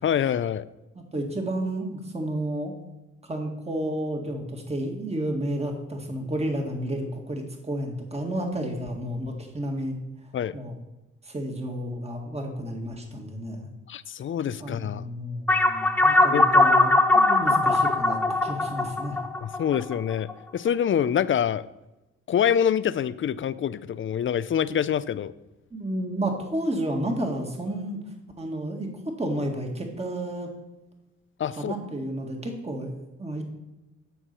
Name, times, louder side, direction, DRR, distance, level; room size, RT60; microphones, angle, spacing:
voice 1, 0.0-0.7 10.3-10.5 13.9-15.0 16.3-16.4 19.4-21.7 22.3-25.3 31.4-31.7, left 9 dB, 40° left, 16 dB, 0.5 m, -25 dB
voice 2, 0.9-2.7 3.2-10.0 10.5-10.7 11.2-13.7 14.6-19.2 25.7-28.0 28.4-30.5 31.5-33.4, right 1 dB, 20° right, 2 dB, 2.0 m, -31 dB
sound 1, 15.5-20.3, left 2 dB, 5° left, 0.8 m, -20 dB
12.5 x 4.7 x 6.9 m, 1.0 s
cardioid pair, 90°, 30 cm